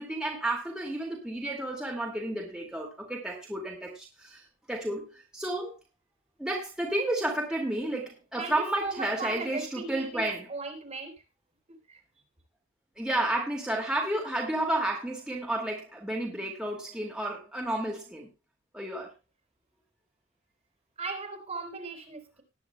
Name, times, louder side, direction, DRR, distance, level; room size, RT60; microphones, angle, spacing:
voice 1, 0.0-5.7 6.4-10.5 13.0-18.3 18.7-19.1, right 1 dB, 5° right, -2 dB, 2.2 m, -31 dB
voice 2, 8.4-11.1 11.9-12.0 21.0-22.4, right 3 dB, 30° right, 1 dB, 3.5 m, -37 dB
19.5 x 9.8 x 2.3 m, 0.27 s
head